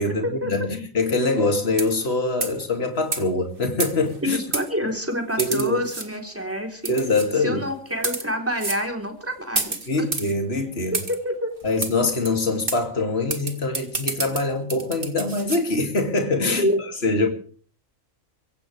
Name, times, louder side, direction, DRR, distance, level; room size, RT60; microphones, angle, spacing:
voice 1, 0.0-4.4 5.4-5.8 6.9-7.6 9.9-11.0 11.6-16.7 17.0-17.3, left 2 dB, 50° left, 4 dB, 2.9 m, -24 dB
sound 1, 1.7-2.1 2.4-2.6 3.1-3.2 3.8-4.2 4.5-4.7 5.4-6.1 6.9-7.3 7.9-8.3 8.6-8.8 9.6-10.3 10.9-11.2 11.8-11.9 12.3-12.4 12.7-12.8 13.3-15.6, right 3 dB, 40° right, 2.3 m, -29 dB
voice 2, 4.2-6.9 7.4-10.1 10.9-11.5 16.4-16.8, equal, 10° right, 3 dB, 3.7 m, -27 dB
24.5 x 16.5 x 3.4 m, 0.43 s
omnidirectional pair, 1.4 m